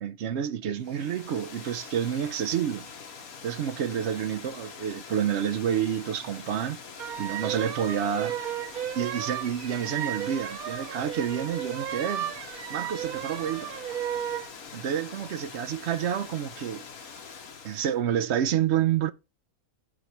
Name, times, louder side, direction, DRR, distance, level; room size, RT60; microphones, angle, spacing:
voice 1, 0.0-2.9 3.4-6.8 7.2-8.4 8.9-12.3 12.7-13.7 14.7-16.9 17.6-19.1, right 9 dB, 65° right, 0.8 m, -29 dB
Water, 0.8-18.0, left 5 dB, 75° left, 1.6 m, -44 dB
sound 1, 7.0-14.5, right 10 dB, 90° right, 1.2 m, -34 dB
13.0 x 6.2 x 3.0 m
omnidirectional pair, 1.5 m